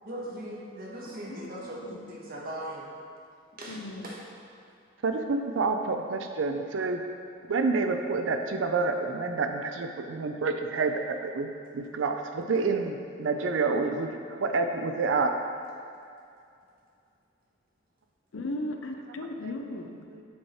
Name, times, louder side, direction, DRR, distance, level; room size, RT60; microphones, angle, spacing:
voice 1, 0.0-2.8 3.6-4.2, right 1 dB, 50° right, -4 dB, 1.3 m, -39 dB
voice 2, 1.0-2.1 3.7-4.1 18.3-20.1, left 1 dB, 85° left, 5 dB, 0.6 m, -37 dB
voice 3, 5.0-7.0 7.5-15.3 20.1-20.2, right 4 dB, 70° right, 5 dB, 0.5 m, -28 dB
7.2 x 4.7 x 4.4 m, 2.5 s
head